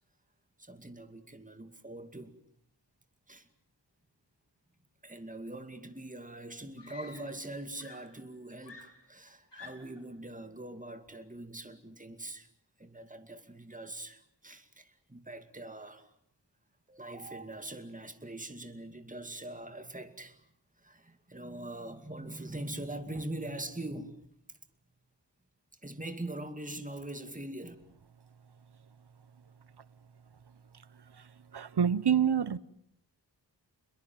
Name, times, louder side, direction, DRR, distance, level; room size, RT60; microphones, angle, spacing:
voice 1, 0.6-2.3 3.3-3.5 5.0-12.5 12.8-16.1 16.9-20.4 20.8-24.3 25.8-27.8, right 1 dB, 20° right, 2.3 m, -43 dB
Screaming, 5.9-6.0 6.8-7.5 7.8-10.1 11.1-11.3, left 5 dB, 80° left, 4.6 m, -52 dB
voice 2, 31.5-32.6, right 8 dB, 65° right, 1.0 m, -26 dB
29.0 x 21.5 x 7.6 m
wide cardioid pair, 70°, 43 cm